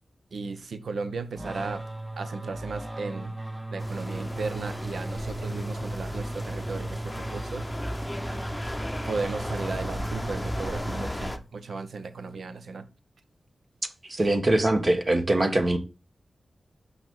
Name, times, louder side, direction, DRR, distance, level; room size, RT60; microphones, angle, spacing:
voice 1, 0.3-1.8 2.2-3.4 3.7-7.7 9.0-12.9, right 4 dB, 80° right, 0.8 m, -35 dB
sound 1, 1.4-11.6, right 1 dB, 20° right, 1.0 m, -36 dB
sound 2, 3.8-11.4, left 1 dB, 15° left, 0.8 m, -36 dB
voice 2, 14.0-15.8, right 1 dB, 40° right, 1.3 m, -23 dB
5.8 x 5.7 x 3.7 m
cardioid pair, 50°, 0 cm